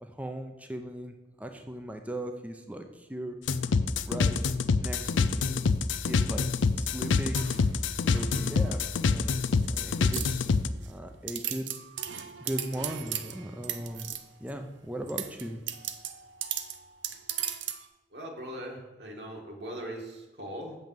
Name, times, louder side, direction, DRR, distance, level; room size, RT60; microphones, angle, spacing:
voice 1, 0.0-3.4 3.7-3.8 4.1-4.4 4.8-5.7 6.1-6.4 6.7-9.4 9.7-10.5 10.9-11.7 12.4-14.1 14.4-15.6, right 1 dB, 10° right, 5 dB, 0.6 m, -38 dB
sound 1, 3.5-10.7, left 4 dB, 90° left, 0.4 m, -26 dB
sound 2, 7.3-8.9 9.4-9.8 10.1-10.9 11.3-14.5 15.1-17.9, right 10 dB, 80° right, 0.7 m, -37 dB
voice 2, 18.1-20.8, right 1 dB, 65° right, -1 dB, 1.9 m, -40 dB
7.7 x 5.5 x 7.7 m, 1.1 s
head